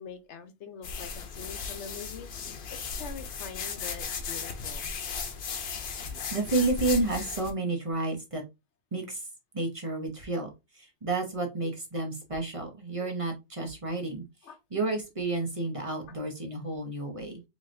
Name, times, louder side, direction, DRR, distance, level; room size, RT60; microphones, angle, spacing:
voice 1, 0.0-4.9 5.6-5.7 13.0-13.1 14.4-14.6 16.0-16.1, left 6 dB, 80° left, 1.0 m, -44 dB
sound 1, 0.8-7.5, left 5 dB, 65° left, 0.9 m, -36 dB
voice 2, 6.3-8.4 8.9-9.3 9.5-10.5 10.7-14.2 14.7-17.4, right 2 dB, 30° right, 0.8 m, -31 dB
3.9 x 3.4 x 2.5 m
omnidirectional pair, 1.2 m